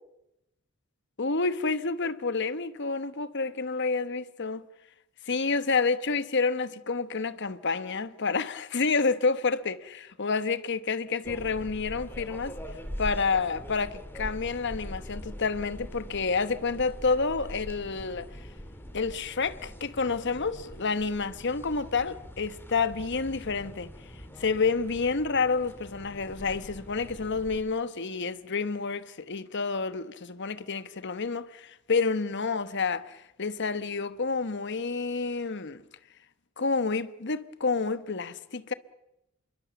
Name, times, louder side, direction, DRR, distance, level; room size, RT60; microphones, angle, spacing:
voice 1, 1.2-4.6 5.3-12.6 13.0-18.3 18.9-23.9 24.4-35.8 36.6-38.7, left 4 dB, 55° left, 1.1 m, -29 dB
sound 1, 11.2-27.6, equal, 10° left, 2.6 m, -43 dB
27.0 x 22.5 x 7.0 m
head